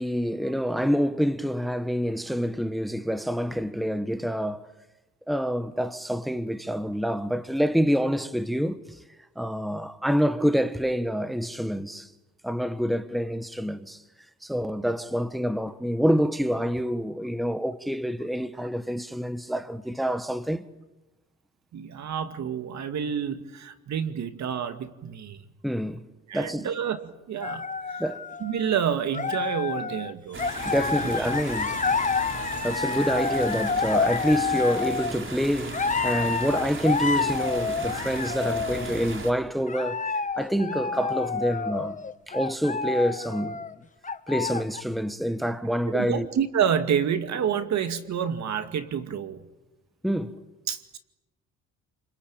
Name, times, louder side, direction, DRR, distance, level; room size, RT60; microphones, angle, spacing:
voice 1, 0.0-4.7 5.3-8.8 9.4-12.1 12.4-14.0 14.4-20.6 25.6-26.1 26.3-26.7 28.0-28.3 30.6-31.8 32.6-40.0 40.4-42.0 42.3-43.6 44.3-46.3 50.0-50.4, equal, ahead, 1.3 m, -27 dB
voice 2, 21.7-25.4 26.3-28.0 28.4-30.5 45.9-49.4 50.7-51.0, right 8 dB, 65° right, 2.2 m, -28 dB
sound 1, 27.4-28.8 29.1-30.1 30.4-35.1 35.7-39.0 39.7-43.7 44.0-44.8, left 4 dB, 25° left, 1.2 m, -29 dB
sound 2, 30.3-39.3, right 3 dB, 40° right, 4.9 m, -37 dB
29.5 x 22.0 x 8.9 m
cardioid pair, 90°, 30 cm